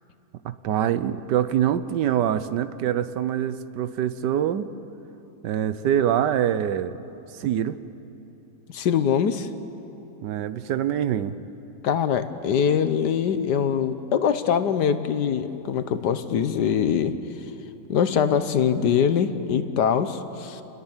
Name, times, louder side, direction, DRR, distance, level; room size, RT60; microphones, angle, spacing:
voice 1, 0.4-4.7 5.4-7.0 7.4-7.8 10.2-11.4, right 10 dB, 75° right, 13 dB, 1.4 m, -24 dB
voice 2, 8.7-9.5 11.8-17.2 17.9-20.6, left 8 dB, 70° left, 11 dB, 1.5 m, -23 dB
29.5 x 21.0 x 7.4 m, 3.0 s
omnidirectional pair, 1.9 m